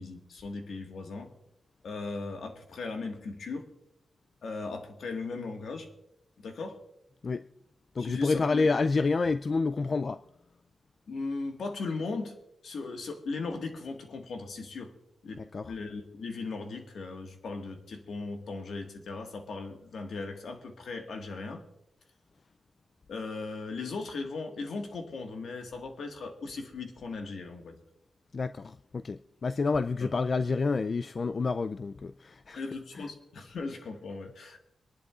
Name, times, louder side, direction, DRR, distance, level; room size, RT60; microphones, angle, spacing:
voice 1, 0.0-1.3 1.8-3.7 4.4-5.9 6.4-6.8 8.0-8.7 11.1-12.3 12.6-14.9 15.2-21.6 23.1-27.8 30.0-30.1 32.6-34.6, left 3 dB, 75° left, 1.6 m, -38 dB
voice 2, 8.0-10.2 15.4-15.7 28.3-32.6 32.9-33.0, left 4 dB, 45° left, 0.3 m, -29 dB
25.0 x 11.0 x 2.4 m
cardioid pair, 85°, 0 cm